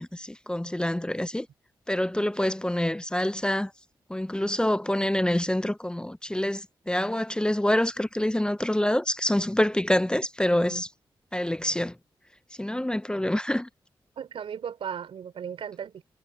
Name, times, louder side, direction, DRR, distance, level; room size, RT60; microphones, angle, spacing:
voice 1, 0.0-1.5 1.9-3.7 4.1-10.9 11.3-11.9 12.6-13.7, left 1 dB, 10° left, 0.6 m, -26 dB
voice 2, 14.2-16.0, right 8 dB, 90° right, 4.6 m, -36 dB
cardioid pair, 65°, 9 cm